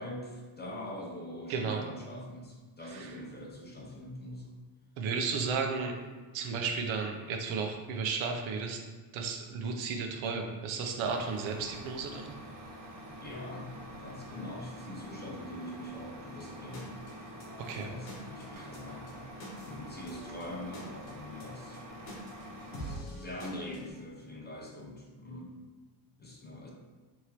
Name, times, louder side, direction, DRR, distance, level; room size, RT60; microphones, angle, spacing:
voice 1, 0.0-4.5 13.2-17.1 17.7-19.3 19.6-21.8 22.7-25.6 26.2-26.7, left 1 dB, 20° left, -1 dB, 0.6 m, -43 dB
voice 2, 1.5-1.8 2.9-3.1 5.0-6.0 6.3-8.8 9.1-12.3 17.7-17.9, right 5 dB, 70° right, 3 dB, 0.7 m, -33 dB
Truck, 11.0-23.0, equal, 40° right, 0.8 m, -47 dB
sound 1, 16.4-23.9, equal, 80° left, 1.3 m, -47 dB
3.6 x 3.0 x 2.9 m, 1.3 s
cardioid pair, 105°, 49 cm